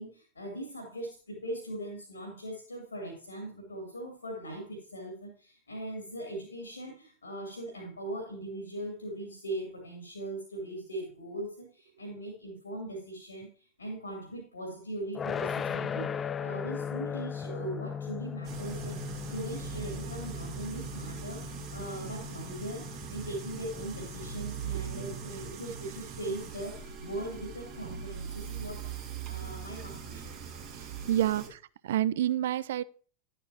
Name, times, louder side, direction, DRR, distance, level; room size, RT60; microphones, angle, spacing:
voice 1, 0.0-19.0 19.3-30.3, right 1 dB, 80° left, 2.7 m, -40 dB
sound 1, 15.1-26.1, left 7 dB, 20° left, 0.4 m, -38 dB
sound 2, 18.4-31.5, right 7 dB, 40° right, 2.3 m, -41 dB
voice 2, 30.7-32.8, right 12 dB, 60° right, 0.4 m, -29 dB
11.0 x 9.0 x 2.9 m
figure-of-eight pair, 90°, 0 cm